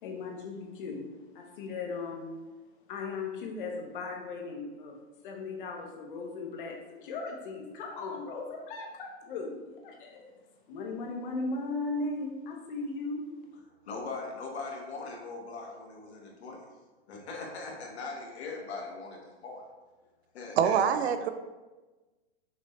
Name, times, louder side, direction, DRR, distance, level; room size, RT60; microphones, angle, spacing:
voice 1, 0.0-1.0 1.3-2.3 2.9-4.9 5.2-10.3 10.7-13.2, left 3 dB, 50° left, 2 dB, 0.9 m, -37 dB
voice 2, 13.8-16.7 17.1-19.6 20.3-20.8, left 3 dB, 75° left, -1 dB, 1.3 m, -40 dB
voice 3, 20.6-21.3, right 8 dB, 70° right, 10 dB, 0.5 m, -25 dB
6.0 x 2.7 x 3.1 m, 1.2 s
supercardioid pair, 160°, 33 cm